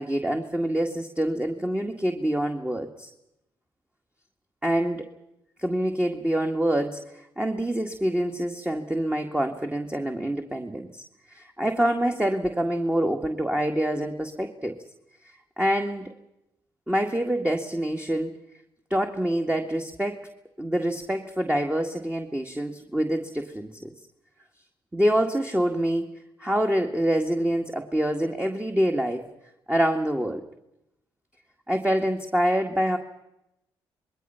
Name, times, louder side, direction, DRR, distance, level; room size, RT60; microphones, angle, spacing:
voice 1, 0.0-3.1 4.6-5.1 5.6-14.8 15.2-16.1 16.9-18.3 18.9-20.3 20.6-23.9 24.9-26.1 26.4-29.3 29.7-30.4 31.7-33.0, right 1 dB, 10° right, 4 dB, 1.9 m, -26 dB
27.0 x 21.0 x 5.7 m, 0.88 s
hypercardioid pair, 45°, 11 cm